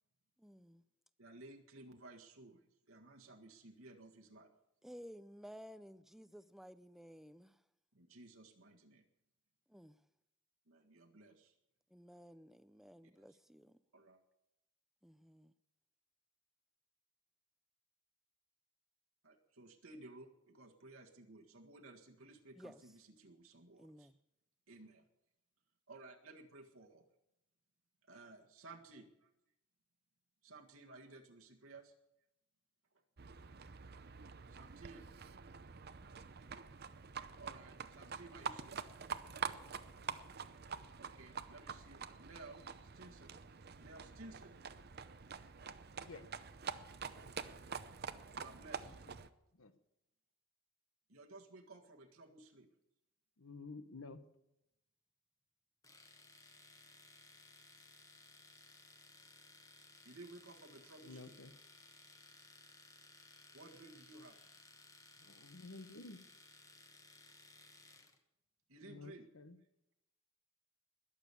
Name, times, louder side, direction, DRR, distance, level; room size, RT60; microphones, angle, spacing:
voice 1, 0.4-0.8 4.8-7.6 9.7-10.0 11.9-13.8 15.0-15.5 22.6-22.8 23.8-24.2, equal, ahead, 14 dB, 0.4 m, -55 dB
voice 2, 1.2-4.5 7.9-9.0 10.7-11.6 13.2-13.4 13.9-14.2 19.2-24.1 24.7-25.0 25.9-27.0 28.0-29.3 30.4-31.9 34.5-35.1 37.4-38.8 41.0-43.4 43.8-44.6 48.3-49.0 51.1-52.7 60.0-61.4 63.5-64.4 68.7-69.3, right 2 dB, 75° right, 2 dB, 1.7 m, -56 dB
Livestock farm animals working animals, 33.2-49.3, right 6 dB, 50° right, 0.7 m, -47 dB
voice 3, 48.8-49.2 49.5-49.7 53.4-54.2 61.0-61.5 65.2-66.2 68.8-69.6, left 3 dB, 75° left, 11 dB, 1.1 m, -52 dB
Domestic sounds home sounds, 55.8-68.2, left 3 dB, 15° left, 1.3 m, -61 dB
20.5 x 7.2 x 8.3 m, 0.87 s
head